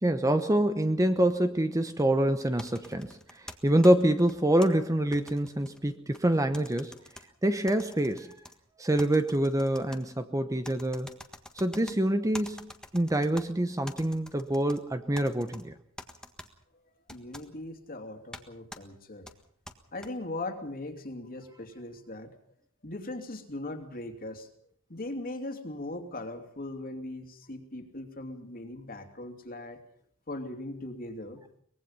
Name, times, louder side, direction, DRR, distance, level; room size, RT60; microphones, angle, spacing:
voice 1, 0.0-6.9 7.4-8.3 8.8-11.1 11.6-15.7, right 1 dB, 15° right, 9 dB, 0.9 m, -26 dB
sound 1, 2.6-4.7 5.1-6.2 6.5-7.2 7.7-8.5 9.0-10.0 10.6-12.0 12.3-13.5 13.9-14.8 15.2-15.6 16.0-16.5 17.1-17.5 18.3-18.4 18.7-18.8 19.3-20.1, left 1 dB, 5° left, 1.6 m, -46 dB
voice 2, 17.1-19.3 19.9-22.4 22.8-24.5 24.9-29.8 30.3-31.4, left 2 dB, 40° left, 6 dB, 2.8 m, -39 dB
24.0 x 20.5 x 5.6 m, 0.64 s
head